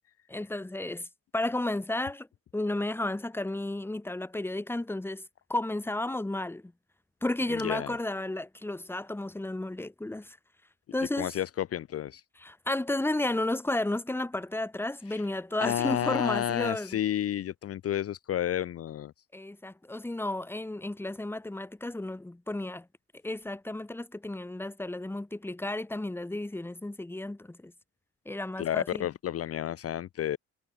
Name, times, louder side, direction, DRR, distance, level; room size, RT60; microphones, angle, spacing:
voice 1, 0.3-1.1 1.3-2.3 2.5-5.2 5.5-6.7 7.2-10.4 10.9-11.3 12.4-17.0 19.3-22.9 23.2-27.7 28.2-29.1, left 2 dB, 5° left, 1.3 m, -32 dB
voice 2, 7.5-7.9 11.2-12.2 15.1-15.2 15.6-19.1 28.6-30.4, left 11 dB, 50° left, 0.6 m, -31 dB
cardioid pair, 90°, 30 cm